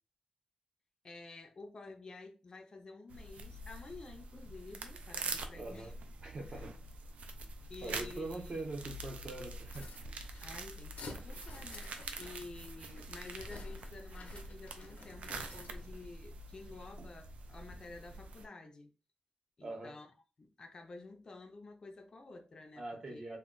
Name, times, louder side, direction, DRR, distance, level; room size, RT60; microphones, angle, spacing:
voice 1, 1.0-5.9 6.4-6.7 7.7-8.6 10.4-18.9 19.6-20.1 20.4-23.4, left 3 dB, 35° left, 0.4 m, -51 dB
sound 1, 3.1-18.5, right 2 dB, 70° right, 0.4 m, -45 dB
voice 2, 5.5-5.9 6.2-6.8 7.8-9.9 12.2-12.3 19.6-19.9 22.8-23.4, right 2 dB, 40° right, 0.7 m, -43 dB
sound 2, 9.6-16.0, left 3 dB, 80° left, 0.6 m, -52 dB
2.2 x 2.1 x 3.6 m
wide cardioid pair, 180°, 2 cm